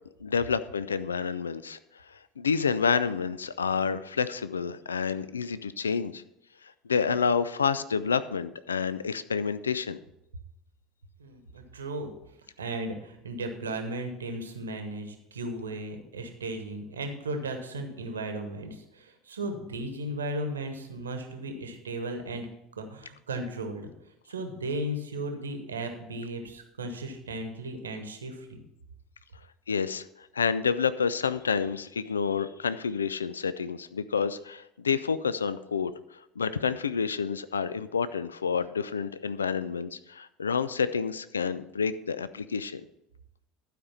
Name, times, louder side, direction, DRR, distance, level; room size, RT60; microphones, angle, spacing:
voice 1, 0.2-1.8 2.4-6.2 6.9-10.0 29.7-35.9 36.4-42.8, left 6 dB, 80° left, 15 dB, 0.3 m, -29 dB
voice 2, 11.2-12.1 12.6-22.5 22.8-23.9 24.3-28.6, right 1 dB, 75° right, 6 dB, 1.1 m, -35 dB
12.0 x 5.0 x 5.6 m, 0.85 s
figure-of-eight pair, 70°, 0 cm